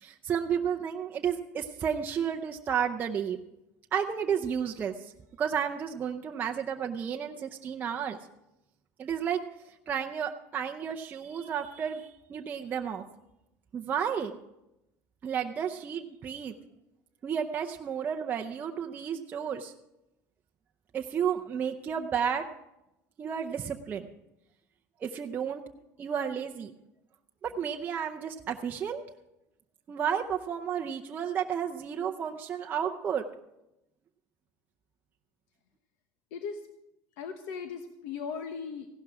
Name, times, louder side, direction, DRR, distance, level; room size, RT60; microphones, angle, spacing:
voice 1, 0.0-3.4 3.9-4.9 5.4-8.2 9.0-9.4 9.9-13.0 13.7-14.3 15.2-16.5 17.2-19.7 20.9-22.5 23.2-24.1 25.0-25.6 26.0-26.7 27.4-29.0 29.9-33.2, right 8 dB, 25° right, 3 dB, 0.6 m, -32 dB
voice 2, 36.3-36.7 37.2-38.9, left 6 dB, 85° left, 6 dB, 1.2 m, -38 dB
16.0 x 12.0 x 4.8 m, 0.88 s
cardioid pair, 175°, 8 cm